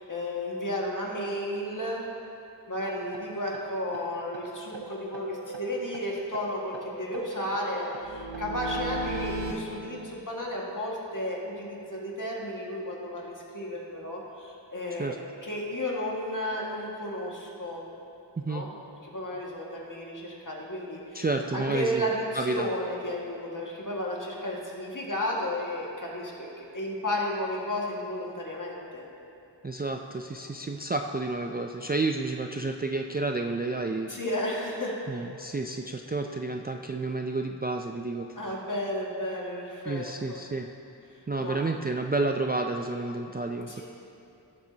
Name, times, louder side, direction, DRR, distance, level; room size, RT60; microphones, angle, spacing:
voice 1, 0.0-2.0 2.7-15.1 15.4-17.8 18.4-18.7 19.1-21.2 21.5-29.0 34.1-35.0 38.4-40.4 41.1-41.6 43.7-43.8, left 1 dB, 45° left, -3 dB, 1.8 m, -33 dB
sound 1, 3.1-3.2 3.5-3.6 3.9-4.0 4.3-4.4 4.7-6.0 6.3-9.5, right 3 dB, 75° right, 1.0 m, -37 dB
voice 2, 21.1-22.0 22.3-22.7 29.6-34.1 35.1-38.5 39.9-40.7 41.3-43.8, right 3 dB, 25° right, 3 dB, 0.4 m, -30 dB
17.5 x 7.3 x 2.8 m, 2.7 s
wide cardioid pair, 50°, 44 cm